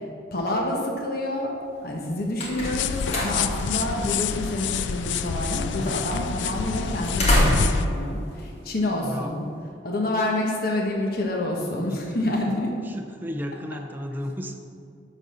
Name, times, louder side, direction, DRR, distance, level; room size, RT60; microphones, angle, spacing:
voice 1, 0.3-9.5 9.8-12.7, left 1 dB, 55° left, -1 dB, 1.2 m, -28 dB
sound 1, 1.9-9.3, equal, 35° left, 1.7 m, -29 dB
sound 2, 2.6-7.9, left 6 dB, 75° left, 0.4 m, -28 dB
voice 2, 9.0-9.4 11.9-12.6 12.8-14.6, equal, 10° right, 3 dB, 0.6 m, -34 dB
11.0 x 4.0 x 6.9 m, 2.3 s
head